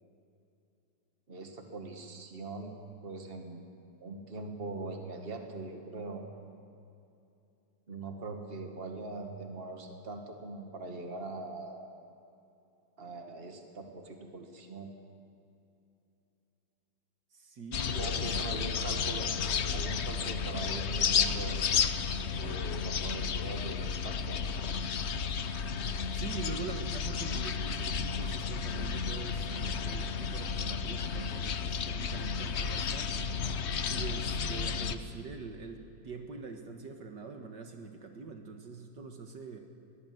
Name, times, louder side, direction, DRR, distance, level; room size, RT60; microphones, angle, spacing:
voice 1, 1.3-2.7 3.0-3.6 4.0-6.2 7.9-11.9 13.0-14.9 17.8-19.3 19.7-21.6 22.4-24.4, right 3 dB, 30° right, 4 dB, 2.1 m, -41 dB
voice 2, 17.3-18.7 26.1-33.5 33.9-39.6, right 4 dB, 65° right, 4 dB, 2.0 m, -44 dB
sound 1, 17.7-35.0, left 6 dB, 55° left, 0.8 m, -32 dB
22.0 x 18.0 x 7.9 m, 2.7 s
omnidirectional pair, 2.0 m